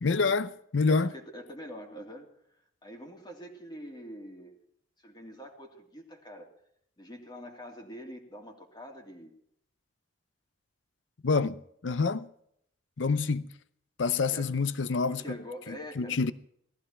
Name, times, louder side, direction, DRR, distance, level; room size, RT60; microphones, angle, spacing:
voice 1, 0.0-1.1 11.2-12.3 13.0-13.5 14.0-15.4 15.7-16.3, left 4 dB, 80° left, 0.7 m, -27 dB
voice 2, 0.8-2.3 2.8-4.6 5.0-6.5 7.0-9.3 14.3-14.6 15.1-16.3, equal, 25° left, 2.8 m, -45 dB
18.5 x 15.0 x 4.4 m
head